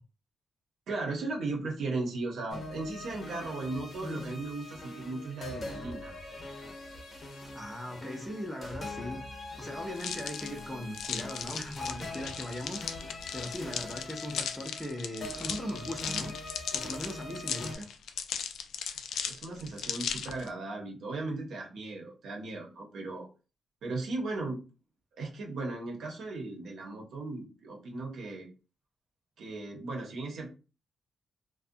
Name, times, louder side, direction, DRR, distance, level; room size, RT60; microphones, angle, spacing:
voice 1, 0.9-6.1 19.2-23.3 23.8-24.6 25.2-28.5 29.4-30.5, right 3 dB, 70° right, 0.8 m, -36 dB
sound 1, 2.5-17.8, left 2 dB, 40° left, 0.6 m, -43 dB
voice 2, 7.5-9.2 9.6-16.3 16.7-17.9, equal, ahead, 0.5 m, -39 dB
sound 2, 10.0-20.5, left 7 dB, 85° left, 0.3 m, -37 dB
2.5 x 2.2 x 2.6 m
wide cardioid pair, 150°, 0 cm